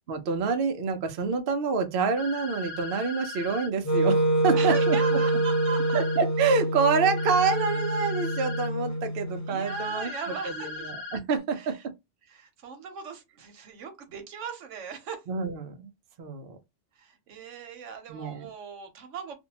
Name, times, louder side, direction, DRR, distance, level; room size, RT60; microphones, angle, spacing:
voice 1, 0.1-5.0 5.9-10.1 10.4-11.8 15.3-15.9 16.2-16.6 18.1-18.5, right 5 dB, 60° right, 0.7 m, -27 dB
sound 1, 2.2-3.7 4.7-6.2 7.2-8.7 9.7-11.2, left 3 dB, 65° left, 0.8 m, -38 dB
Wind instrument woodwind instrument, 3.8-9.9, right 2 dB, 20° left, 0.5 m, -26 dB
voice 2, 4.5-6.0 9.4-10.9 11.5-11.8 12.3-15.2 17.0-19.4, right 6 dB, 80° right, 1.1 m, -38 dB
2.6 x 2.1 x 2.8 m
omnidirectional pair, 1.2 m